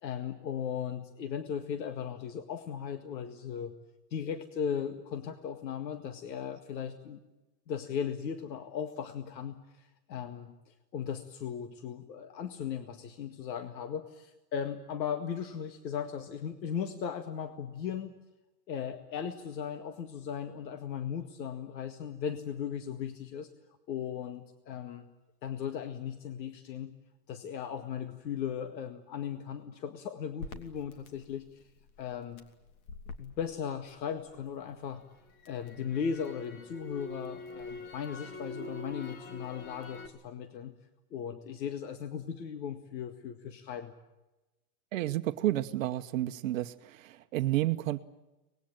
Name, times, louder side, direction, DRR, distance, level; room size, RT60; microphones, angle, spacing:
voice 1, 0.0-3.7 4.1-7.2 7.7-18.1 18.7-23.5 23.9-25.1 25.4-27.0 27.3-31.6 32.0-32.4 33.2-35.0 35.5-40.8 41.1-43.9, left 8 dB, 85° left, 8 dB, 2.0 m, -37 dB
Crackle, 30.4-34.5 34.9-40.1, left 3 dB, 55° left, 2.9 m, -45 dB
voice 2, 44.9-48.0, right 15 dB, 50° right, 9 dB, 1.0 m, -31 dB
25.0 x 20.5 x 8.9 m, 1.0 s
supercardioid pair, 170°, 50 cm